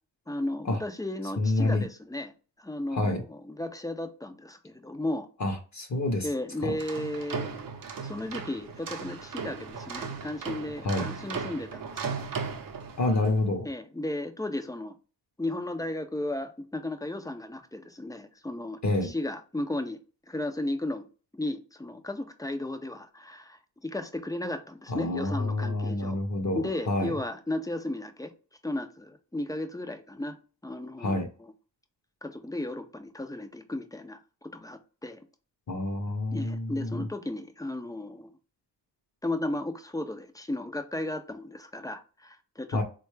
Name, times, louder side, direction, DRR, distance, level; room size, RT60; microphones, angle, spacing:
voice 1, 0.3-2.3 2.6-5.3 6.2-7.5 8.0-12.3 13.6-14.9 15.4-20.0 20.3-21.1 21.3-26.2 26.5-28.3 28.6-30.4 30.6-31.5 32.2-35.2 36.3-38.3 39.2-42.8, left 1 dB, 10° left, 0.4 m, -35 dB
voice 2, 1.4-1.9 2.9-3.2 5.4-6.3 6.6-6.8 10.8-11.1 13.0-13.7 18.8-19.1 24.9-27.1 31.0-31.3 35.7-37.1 42.7-42.8, left 2 dB, 40° left, 0.7 m, -28 dB
sound 1, 6.6-13.3, right 5 dB, 50° right, 0.6 m, -37 dB
3.8 x 2.2 x 3.1 m
wide cardioid pair, 95°, 43 cm